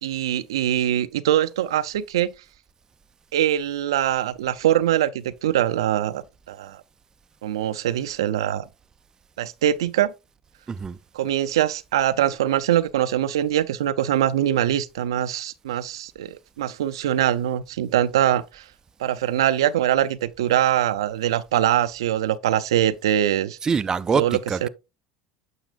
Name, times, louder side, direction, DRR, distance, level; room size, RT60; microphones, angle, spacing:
voice 1, 0.0-2.3 3.3-6.8 7.4-8.7 9.4-10.1 11.1-18.7 19.0-23.6 24.1-24.7, right 11 dB, 90° right, 0.4 m, -23 dB
voice 2, 10.7-11.0 23.6-24.7, right 5 dB, 25° right, 0.4 m, -24 dB
9.0 x 6.3 x 2.4 m
hypercardioid pair, 85°, 3 cm